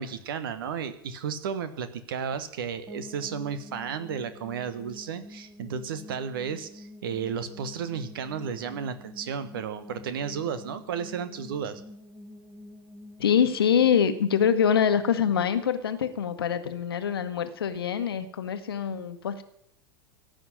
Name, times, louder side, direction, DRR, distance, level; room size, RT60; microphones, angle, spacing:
voice 1, 0.0-11.8, right 7 dB, 60° right, 11 dB, 1.4 m, -33 dB
sound 1, 2.9-15.8, left 1 dB, 5° right, 1.6 m, -47 dB
voice 2, 13.2-19.4, left 8 dB, 65° left, 10 dB, 1.3 m, -24 dB
15.5 x 6.6 x 9.6 m, 0.73 s
figure-of-eight pair, 85°, 13 cm